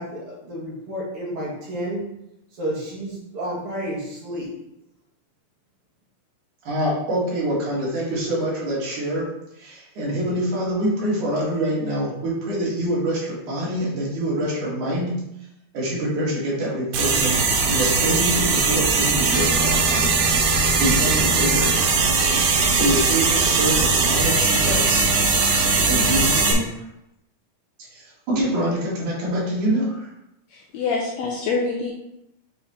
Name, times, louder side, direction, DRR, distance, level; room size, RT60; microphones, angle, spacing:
voice 1, 0.0-2.0 2.5-4.5, equal, 50° right, -5 dB, 2.2 m, -31 dB
voice 2, 6.6-9.3 9.6-15.2 15.7-20.1 20.8-21.7 22.7-25.1 25.9-26.8 27.9-30.1, right 1 dB, 70° right, -6 dB, 3.3 m, -25 dB
sound 1, 16.9-26.5, right 4 dB, 90° right, 2.6 m, -20 dB
voice 3, 30.5-31.9, left 4 dB, 70° left, -2 dB, 1.7 m, -25 dB
7.0 x 3.2 x 4.2 m, 0.85 s
omnidirectional pair, 3.6 m